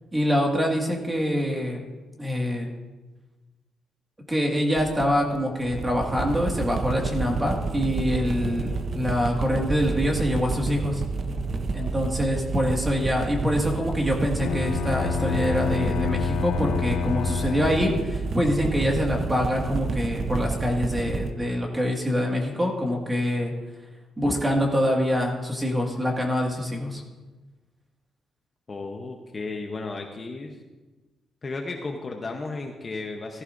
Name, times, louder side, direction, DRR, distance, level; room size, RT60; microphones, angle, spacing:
voice 1, 0.1-1.8 2.2-2.7 4.3-11.0 11.7-23.5 24.2-27.0, equal, 10° right, 0 dB, 1.9 m, -25 dB
sound 1, 4.8-21.3, right 4 dB, 40° right, 0.7 m, -30 dB
Bowed string instrument, 14.4-18.3, left 10 dB, 90° left, 0.3 m, -29 dB
voice 2, 28.7-30.6 31.4-33.4, left 3 dB, 25° left, 2 dB, 0.9 m, -34 dB
15.5 x 14.0 x 2.6 m, 1.2 s
cardioid pair, 155°, 0 cm